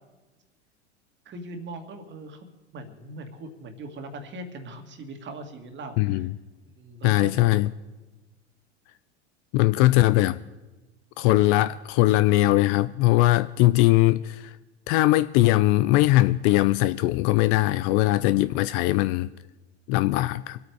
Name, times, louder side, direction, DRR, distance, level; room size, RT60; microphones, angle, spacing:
voice 1, 1.3-2.5 2.7-6.3 6.8-7.6, right 2 dB, 30° right, 2.2 m, -40 dB
voice 2, 6.0-6.3 7.0-7.7 9.5-10.4 11.2-14.6 14.9-19.3 19.9-20.6, left 17 dB, 40° left, 0.4 m, -20 dB
24.5 x 8.7 x 4.8 m
hypercardioid pair, 95°, 34 cm